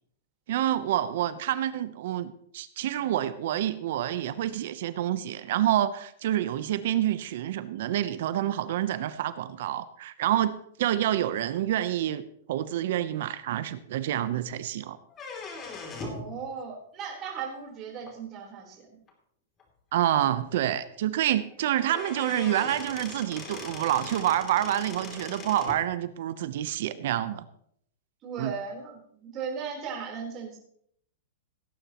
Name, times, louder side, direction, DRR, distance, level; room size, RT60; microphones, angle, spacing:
voice 1, 0.5-12.2 12.5-15.0 19.9-27.4 28.4-28.5, right 12 dB, 65° right, 14 dB, 0.8 m, -28 dB
sound 1, 15.1-16.3 18.1-18.2 19.1-19.2 19.6-19.7 20.0-20.1 21.5-21.6 21.8-25.8, left 4 dB, 25° left, 3.0 m, -40 dB
voice 2, 16.0-19.0 28.2-30.6, right 6 dB, 30° right, -1 dB, 4.0 m, -37 dB
17.5 x 10.0 x 3.0 m, 0.67 s
hypercardioid pair, 130°, 0 cm